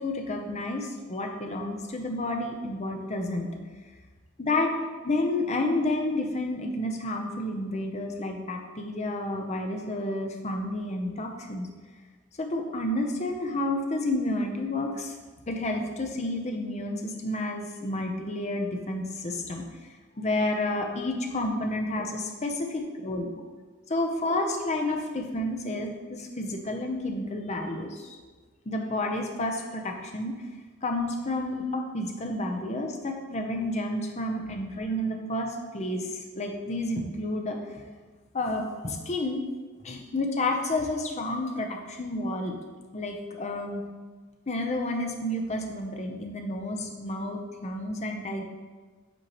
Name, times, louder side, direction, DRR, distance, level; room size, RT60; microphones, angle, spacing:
voice 1, 0.0-3.5 4.4-4.7 5.0-11.7 12.4-15.1 15.5-19.6 20.2-23.3 23.9-28.2 28.7-30.3 30.8-37.6 38.3-39.4 39.8-42.6 42.9-43.8 44.5-48.4, left 1 dB, 35° left, 2 dB, 0.7 m, -30 dB
7.8 x 4.4 x 3.1 m, 1.4 s
head